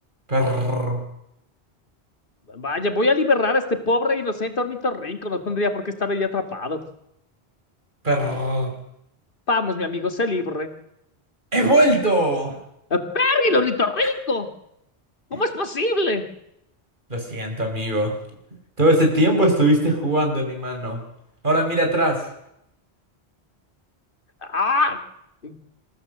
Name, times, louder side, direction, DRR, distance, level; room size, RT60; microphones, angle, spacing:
voice 1, 0.3-1.0 8.0-8.7 11.5-12.6 15.3-15.4 17.1-18.2 18.8-21.0 21.4-22.2, right 1 dB, 50° right, 4 dB, 4.9 m, -20 dB
voice 2, 2.5-6.8 9.5-10.7 12.9-14.5 15.3-16.2 24.5-25.0 25.4-25.5, left 2 dB, 55° left, 7 dB, 2.2 m, -23 dB
26.5 x 15.0 x 7.8 m, 0.79 s
omnidirectional pair, 1.1 m